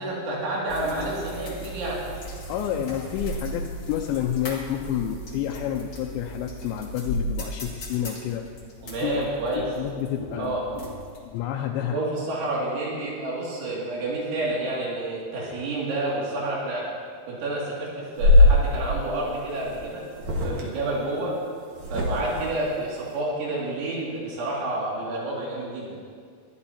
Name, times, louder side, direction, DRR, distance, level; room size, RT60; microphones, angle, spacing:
voice 1, 0.0-2.0 8.8-9.7 10.4-10.6 11.8-16.9 17.3-20.1 20.4-21.4 21.9-26.0, right 2 dB, 85° right, -5 dB, 4.9 m, -29 dB
sound 1, 0.7-11.4, equal, 45° left, 1.5 m, -37 dB
voice 2, 2.5-8.4 9.0-9.2 9.5-10.6 11.2-12.0, left 10 dB, 85° left, 0 dB, 2.9 m, -29 dB
sound 2, 18.2-18.6 19.6-19.8 20.1-20.6 21.8-22.5, left 2 dB, 55° right, 2.2 m, -19 dB
22.0 x 13.5 x 2.9 m, 2.1 s
omnidirectional pair, 5.2 m